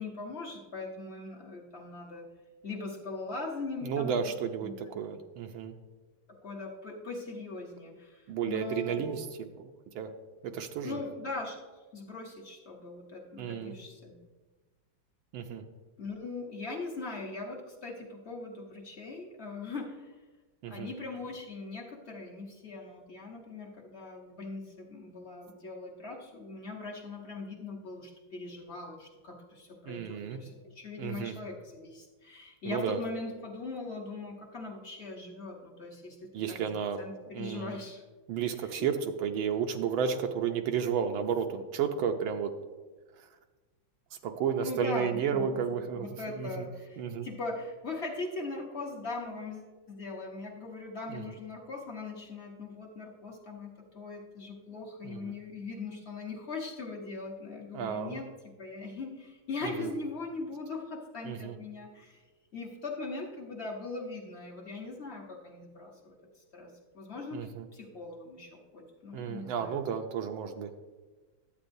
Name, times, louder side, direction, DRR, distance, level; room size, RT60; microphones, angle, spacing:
voice 1, 0.0-2.3 2.6-4.1 4.6-5.0 6.4-9.2 10.8-11.6 11.9-14.2 16.0-20.2 20.7-36.7 37.0-38.0 38.8-38.9 44.6-45.6 46.0-58.3 58.6-62.2 62.5-69.8, left 3 dB, 45° left, -1 dB, 0.9 m, -40 dB
voice 2, 3.8-5.7 8.3-9.3 9.6-10.1 10.4-11.0 13.4-13.7 15.3-15.6 20.6-20.9 29.9-30.4 31.0-31.3 32.6-33.0 36.3-37.0 37.3-37.8 38.3-42.5 43.2-43.3 44.2-46.7 47.0-47.3 51.1-51.3 55.0-55.3 57.7-58.2 59.6-59.9 61.2-61.6 67.3-67.7 69.1-70.7, right 7 dB, 80° right, 5 dB, 1.4 m, -32 dB
11.5 x 8.4 x 2.6 m, 1.3 s
omnidirectional pair, 2.2 m